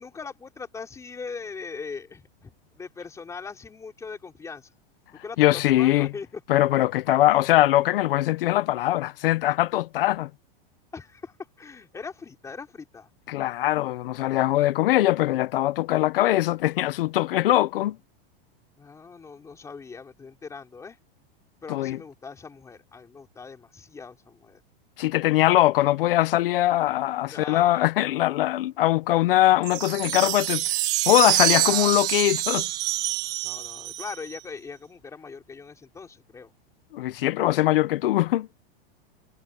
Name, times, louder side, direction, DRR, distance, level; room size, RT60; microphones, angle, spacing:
voice 1, 0.0-4.7 5.2-6.4 7.2-7.3 10.9-13.1 18.8-21.0 21.6-24.6 27.2-27.8 31.6-32.0 33.4-36.5, left 5 dB, 10° left, 4.0 m, -40 dB
voice 2, 5.4-6.1 6.5-10.3 13.3-18.0 21.7-22.0 25.0-30.6 31.1-32.7 36.9-38.5, left 15 dB, 60° left, 1.0 m, -22 dB
sound 1, 29.6-34.4, right 17 dB, 15° right, 0.3 m, -26 dB
supercardioid pair, 170°, 31 cm